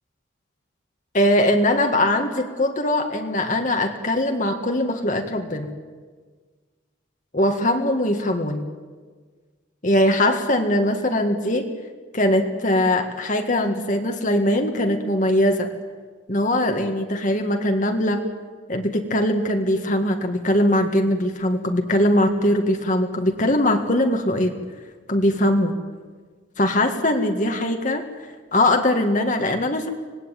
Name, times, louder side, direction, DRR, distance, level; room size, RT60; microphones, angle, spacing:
voice 1, 1.1-5.7 7.3-8.7 9.8-11.7 12.1-15.7 16.3-18.2 18.7-24.5 25.1-25.7 26.6-28.1 28.5-29.9, left 1 dB, 40° left, 4 dB, 1.8 m, -21 dB
25.5 x 19.5 x 9.2 m, 1.5 s
head